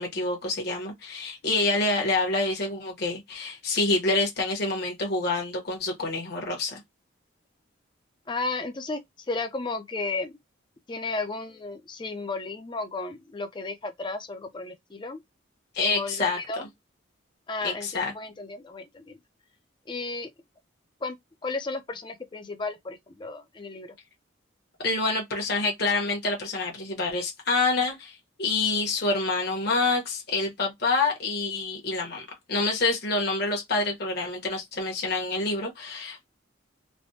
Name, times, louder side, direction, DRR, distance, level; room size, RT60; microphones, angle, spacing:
voice 1, 0.0-6.8 15.7-16.4 17.6-18.1 24.8-36.3, left 3 dB, 55° left, 1.0 m, -27 dB
voice 2, 8.3-9.0 9.3-10.3 10.9-15.2 15.9-16.7 17.5-19.2 19.9-20.3 21.0-21.2 21.4-23.9, left 3 dB, 25° left, 0.4 m, -33 dB
3.2 x 2.1 x 2.7 m
head